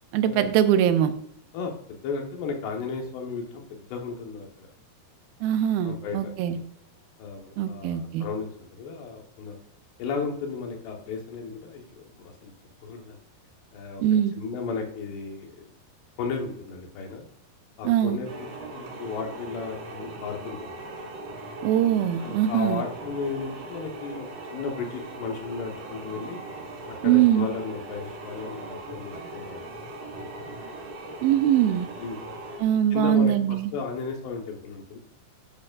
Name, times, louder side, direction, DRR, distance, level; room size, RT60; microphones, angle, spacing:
voice 1, 0.1-1.1 5.4-6.6 7.6-8.3 14.0-14.3 17.8-18.2 21.6-22.8 27.0-27.5 31.2-31.9 32.6-33.7, right 10 dB, 80° right, 10 dB, 2.4 m, -22 dB
voice 2, 1.5-4.7 5.8-6.6 7.2-9.6 10.0-12.5 12.8-13.2 13.7-14.0 14.4-15.7 16.2-17.2 17.8-20.8 22.2-26.4 27.0-29.7 32.0-32.2 32.9-35.0, left 4 dB, 80° left, 2 dB, 3.4 m, -34 dB
sound 1, 18.2-32.6, right 2 dB, 60° right, 3.8 m, -39 dB
11.5 x 8.2 x 2.5 m, 0.71 s
omnidirectional pair, 4.7 m